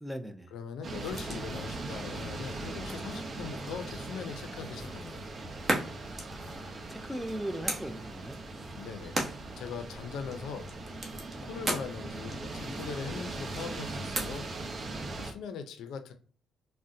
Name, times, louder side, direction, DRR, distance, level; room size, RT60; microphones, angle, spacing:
voice 1, 0.0-0.5 6.3-8.4, equal, 5° right, 0.4 m, -39 dB
voice 2, 0.5-5.2 8.7-9.2 9.5-10.7 11.4-14.5 14.8-16.1, left 6 dB, 80° left, 0.4 m, -41 dB
sound 1, 0.8-15.3, right 2 dB, 55° right, 0.6 m, -40 dB
sound 2, 1.0-14.8, right 1 dB, 35° right, 1.0 m, -40 dB
3.7 x 2.1 x 2.6 m
cardioid pair, 90°, 0 cm